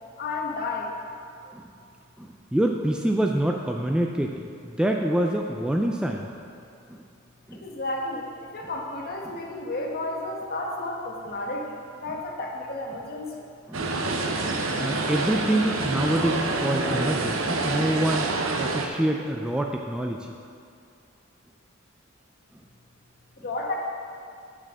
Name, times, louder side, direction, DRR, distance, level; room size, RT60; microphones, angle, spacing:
voice 1, 0.2-0.9 7.6-11.7 12.0-13.3 23.4-23.8, left 2 dB, 50° left, 0 dB, 1.1 m, -32 dB
voice 2, 2.2-6.4 6.9-7.0 7.5-7.7 13.7-13.9 14.8-20.4, right 1 dB, 5° right, 1 dB, 0.4 m, -26 dB
sound 1, 13.7-18.9, right 2 dB, 75° right, 0.8 m, -27 dB
8.2 x 6.1 x 6.2 m, 2.4 s
head